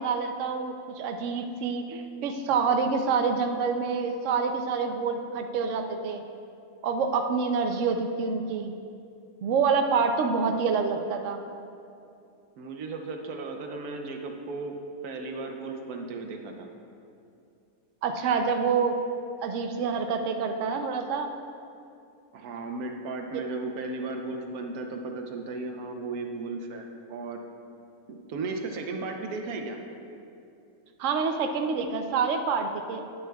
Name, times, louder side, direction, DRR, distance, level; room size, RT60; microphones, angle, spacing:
voice 1, 0.0-6.2 6.8-8.7 9.4-11.4 18.0-19.0 19.4-21.3 31.0-33.1, right 5 dB, 65° right, 5 dB, 0.9 m, -27 dB
voice 2, 12.6-14.8 15.0-16.7 22.3-27.4 28.1-29.8, right 3 dB, 90° right, 3 dB, 1.3 m, -35 dB
10.0 x 9.7 x 2.3 m, 2.5 s
omnidirectional pair, 1.5 m